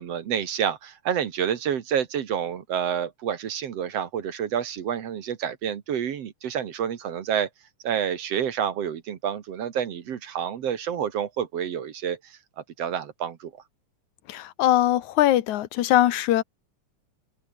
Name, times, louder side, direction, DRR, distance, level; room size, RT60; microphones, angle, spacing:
voice 1, 0.0-7.5 7.8-13.5, right 8 dB, 60° right, 2.4 m, -29 dB
voice 2, 14.3-16.4, left 13 dB, 80° left, 2.4 m, -21 dB
omnidirectional pair, 3.4 m